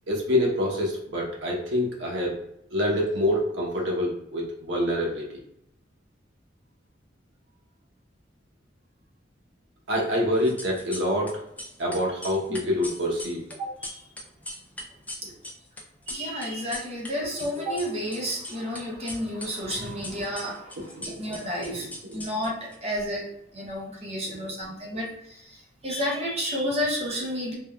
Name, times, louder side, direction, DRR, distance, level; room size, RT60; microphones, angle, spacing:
voice 1, 0.1-2.4 2.7-5.3 9.9-11.4 11.8-13.4 15.2-15.3 19.8-19.9 21.0-21.4 22.0-22.3 24.3-24.5, left 1 dB, 85° right, -2 dB, 0.8 m, -26 dB
sound 1, 10.4-11.3 11.6-17.1 17.4-18.8 19.1-22.8, left 1 dB, 10° left, 0.3 m, -39 dB
voice 2, 13.6-14.0 15.2-15.3 16.1-27.6, equal, 35° right, -2 dB, 0.6 m, -31 dB
3.4 x 2.2 x 2.2 m, 0.78 s
head